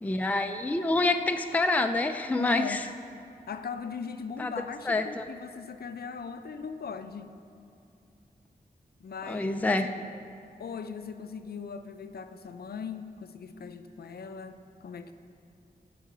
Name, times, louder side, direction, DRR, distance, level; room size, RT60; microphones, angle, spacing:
voice 1, 0.0-2.9 4.4-4.5 4.9-5.3 9.3-9.9, left 2 dB, 10° left, 6 dB, 0.4 m, -27 dB
voice 2, 2.4-2.9 3.5-7.3 9.0-10.1 10.6-15.1, left 6 dB, 70° left, 9 dB, 0.5 m, -39 dB
14.0 x 4.9 x 6.1 m, 2.7 s
wide cardioid pair, 125°, 16 cm